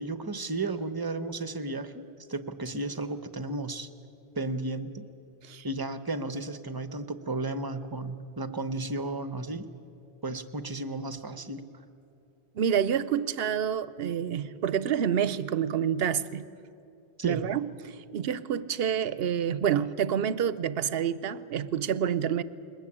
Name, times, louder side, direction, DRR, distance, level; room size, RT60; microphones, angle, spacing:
voice 1, 0.0-3.9 4.3-5.0 5.6-9.7 10.2-11.6 17.2-17.4, right 2 dB, 20° right, 0.8 m, -33 dB
voice 2, 12.5-16.5 17.2-22.4, right 8 dB, 65° right, 0.9 m, -28 dB
22.0 x 20.0 x 8.6 m
omnidirectional pair, 1.1 m